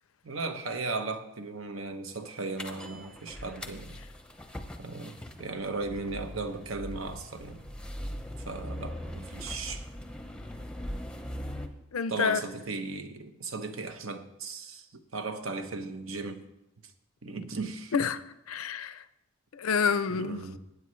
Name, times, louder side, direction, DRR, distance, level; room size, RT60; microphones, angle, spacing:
voice 1, 0.2-4.0 4.8-7.6 8.5-9.8 12.1-14.9 15.1-16.4 17.2-17.9 20.1-20.6, right 3 dB, 70° right, 1.0 m, -36 dB
sound 1, 2.6-11.7, equal, 5° left, 0.7 m, -41 dB
voice 2, 11.9-12.4 17.9-18.2 18.5-19.0 19.5-20.4, left 6 dB, 85° left, 0.6 m, -28 dB
16.0 x 9.4 x 3.2 m
head